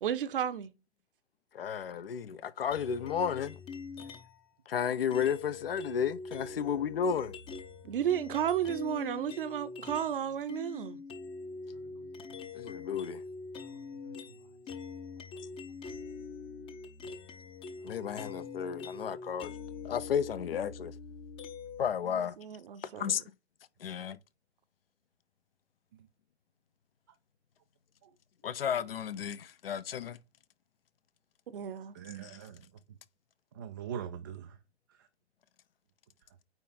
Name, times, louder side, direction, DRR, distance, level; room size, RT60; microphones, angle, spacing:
voice 1, 0.0-0.7 7.8-11.0 22.1-23.1 31.5-31.9, right 9 dB, 50° right, 0.9 m, -33 dB
voice 2, 1.5-3.6 4.7-7.3 12.5-13.2 17.8-19.5 19.8-20.9 21.8-22.4 22.8-23.2 23.8-24.2 28.4-30.2 32.2-32.4, left 7 dB, 55° left, 0.7 m, -33 dB
sound 1, 2.7-4.4 5.1-10.2 10.5-21.9, left 4 dB, 15° left, 0.7 m, -44 dB
voice 3, 31.9-32.7 33.5-34.6, right 9 dB, 20° right, 0.3 m, -42 dB
9.1 x 3.3 x 3.9 m
figure-of-eight pair, 115°, 34 cm